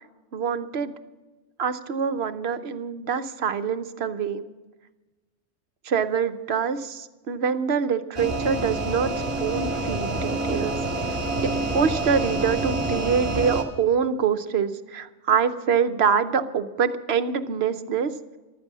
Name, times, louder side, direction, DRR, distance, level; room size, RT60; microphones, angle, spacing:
voice 1, 0.3-0.9 1.6-4.4 5.8-9.1 9.4-10.7 11.4-18.4, right 6 dB, 60° right, 11 dB, 1.0 m, -25 dB
sound 1, 8.1-13.6, right 2 dB, 25° right, 2.7 m, -27 dB
14.5 x 13.0 x 6.1 m, 1.2 s
omnidirectional pair, 1.3 m